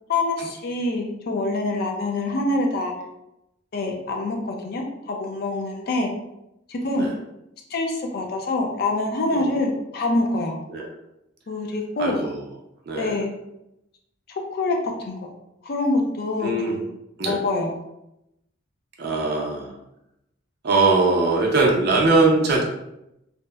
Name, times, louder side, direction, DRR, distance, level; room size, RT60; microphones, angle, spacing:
voice 1, 0.1-2.9 3.7-6.1 6.7-7.1 7.7-10.5 11.5-12.2 13.0-13.3 14.3-15.3 15.6-16.9 17.2-17.7, left 2 dB, 50° left, 2 dB, 0.4 m, -25 dB
voice 2, 12.0-12.4 12.9-13.2 16.4-16.8 17.2-17.4 19.0-19.7 20.6-22.6, right 3 dB, 55° right, -1 dB, 0.5 m, -21 dB
2.7 x 2.0 x 2.2 m, 0.85 s
head